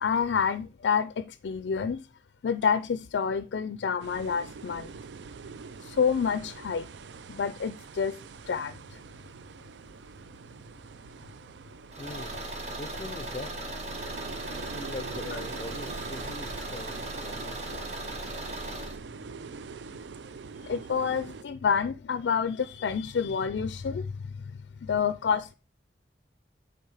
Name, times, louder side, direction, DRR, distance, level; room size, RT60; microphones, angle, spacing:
voice 1, 0.0-2.1 2.4-4.9 5.8-6.9 7.3-8.2 8.5-9.0 20.6-24.1 24.8-25.5, left 6 dB, 80° left, 0.4 m, -28 dB
sound 1, 4.0-21.4, right 5 dB, 85° right, 0.4 m, -44 dB
Car / Engine, 11.9-19.0, right 1 dB, 40° right, 1.4 m, -37 dB
voice 2, 12.0-12.4 12.8-13.7 14.4-18.1, left 2 dB, 35° left, 0.6 m, -42 dB
8.5 x 4.0 x 4.8 m
head